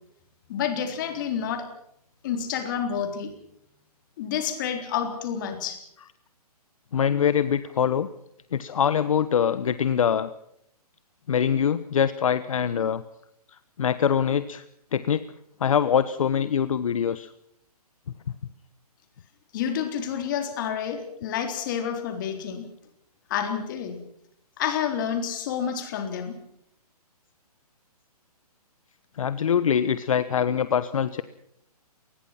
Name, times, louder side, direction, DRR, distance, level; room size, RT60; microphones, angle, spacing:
voice 1, 0.5-1.6 2.2-3.3 4.2-5.8 19.5-22.7 23.3-24.0 24.6-26.3, left 8 dB, 30° left, 6 dB, 3.8 m, -29 dB
voice 2, 6.9-8.1 8.5-10.3 11.3-13.0 13.8-14.6 14.9-15.2 15.6-17.3 29.2-31.2, left 8 dB, 60° left, 14 dB, 1.1 m, -23 dB
26.5 x 20.0 x 5.9 m, 0.73 s
hypercardioid pair, 165°, 20 cm